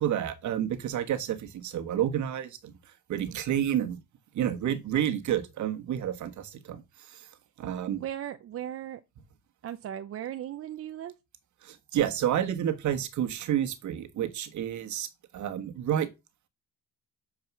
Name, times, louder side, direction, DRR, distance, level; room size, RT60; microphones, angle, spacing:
voice 1, 0.0-2.7 3.1-4.0 4.3-6.8 7.1-7.3 7.6-8.0 11.6-16.1, right 10 dB, 60° right, 1.3 m, -30 dB
voice 2, 8.0-9.0 9.6-11.1, right 11 dB, 45° right, 0.6 m, -37 dB
6.9 x 4.8 x 6.0 m
cardioid pair, 125°, 33 cm